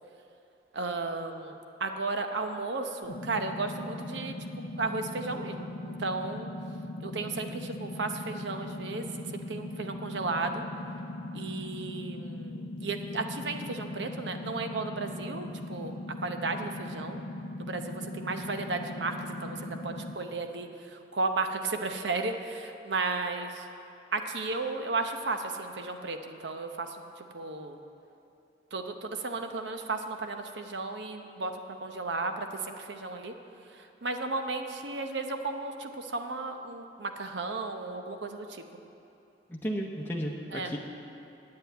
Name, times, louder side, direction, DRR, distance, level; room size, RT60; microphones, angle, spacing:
voice 1, 0.7-4.4 4.8-6.5 7.0-10.6 11.3-15.9 16.2-17.2 17.6-23.7 24.1-27.8 28.7-33.3 33.7-38.6 40.5-40.7, right 3 dB, 75° right, 6 dB, 0.8 m, -34 dB
sound 1, 3.0-20.2, left 1 dB, 85° left, 0.7 m, -39 dB
voice 2, 39.5-40.8, equal, 10° left, -2 dB, 0.8 m, -33 dB
8.6 x 8.2 x 9.2 m, 2.8 s
head